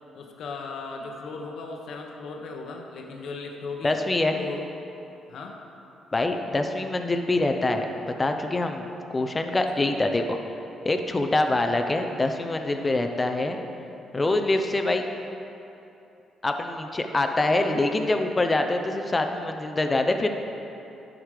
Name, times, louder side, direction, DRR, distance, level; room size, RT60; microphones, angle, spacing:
voice 1, 0.1-4.0 4.3-4.7 5.3-5.6 9.7-9.9 12.7-13.0 14.2-14.4, left 4 dB, 70° left, 2 dB, 1.0 m, -37 dB
voice 2, 3.8-4.4 6.1-10.4 10.8-13.6 14.1-15.0 16.4-20.3, left 2 dB, 25° left, 5 dB, 0.6 m, -25 dB
11.0 x 5.1 x 4.8 m, 2.9 s
cardioid pair, 90°, 0 cm